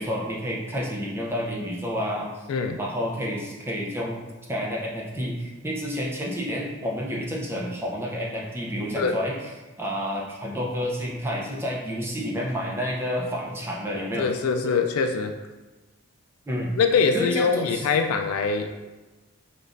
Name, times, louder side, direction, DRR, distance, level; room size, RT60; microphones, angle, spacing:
voice 1, 0.0-2.3 2.8-4.2 4.5-9.5 9.8-14.3 14.7-14.8 16.5-16.8 17.1-17.8, equal, 10° right, -2 dB, 0.6 m, -29 dB
voice 2, 2.5-2.8 9.0-9.1 14.1-15.4 16.8-18.7, left 5 dB, 90° left, 5 dB, 0.3 m, -23 dB
6.9 x 2.3 x 2.5 m, 1.2 s
head